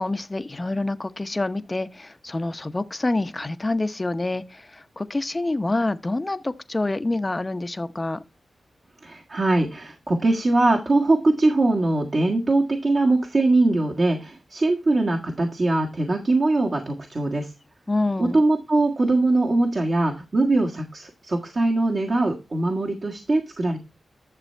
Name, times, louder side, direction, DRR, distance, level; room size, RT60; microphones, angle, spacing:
voice 1, 0.0-8.2 17.9-18.4, left 2 dB, 30° left, 0.8 m, -27 dB
voice 2, 9.0-17.5 18.2-23.8, right 2 dB, 50° right, 1.6 m, -22 dB
11.0 x 7.0 x 4.4 m
cardioid pair, 65°, 0 cm